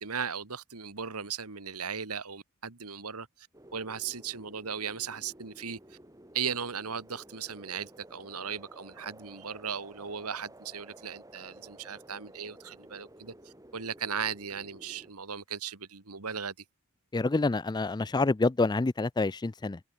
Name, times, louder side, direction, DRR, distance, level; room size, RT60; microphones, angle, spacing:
voice 1, 0.0-3.5 3.7-6.0 6.3-16.5, right 7 dB, 85° right, 2.0 m, -37 dB
sound 1, 3.5-15.1, right 1 dB, 15° right, 7.2 m, -53 dB
voice 2, 17.1-19.8, left 3 dB, 20° left, 0.4 m, -27 dB
head